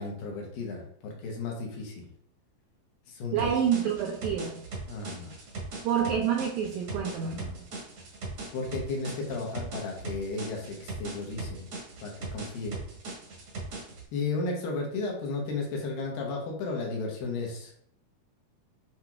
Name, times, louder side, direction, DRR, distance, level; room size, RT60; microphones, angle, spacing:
voice 1, 0.0-2.1 3.1-3.5 4.9-5.3 7.2-7.7 8.5-11.7 12.0-12.8 14.1-17.7, left 3 dB, 80° left, 1 dB, 2.7 m, -34 dB
voice 2, 3.3-4.6 5.8-7.4, right 8 dB, 90° right, 1 dB, 1.6 m, -28 dB
sound 1, 3.4-14.0, right 3 dB, 60° right, 1.5 m, -40 dB
7.7 x 2.9 x 2.3 m, 0.67 s
omnidirectional pair, 4.0 m